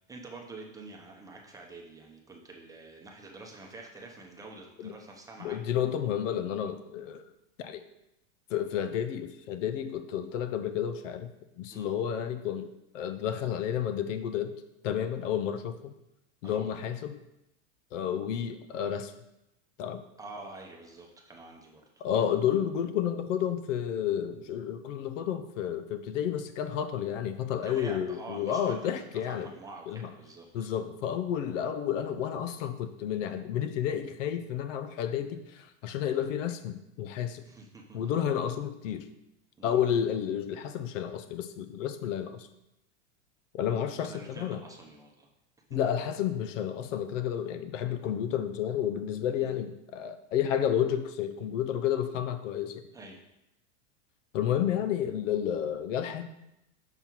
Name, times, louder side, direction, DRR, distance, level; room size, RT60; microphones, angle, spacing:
voice 1, 0.1-5.6 11.7-11.9 16.4-16.7 20.2-22.0 27.6-30.7 37.4-38.0 39.6-39.8 44.1-45.3 49.4-49.5 52.9-53.2, right 2 dB, 10° right, 0 dB, 0.8 m, -47 dB
voice 2, 5.4-7.2 7.6-7.8 8.5-11.3 11.6-12.7 12.9-14.5 14.8-15.9 16.4-17.2 17.9-19.1 19.8-20.0 22.0-29.5 29.9-30.1 30.5-37.4 37.9-39.1 39.6-42.5 43.5-44.6 45.7-52.8 54.3-56.2, left 9 dB, 70° left, 10 dB, 0.8 m, -31 dB
5.9 x 5.5 x 4.5 m, 0.89 s
supercardioid pair, 140°, 39 cm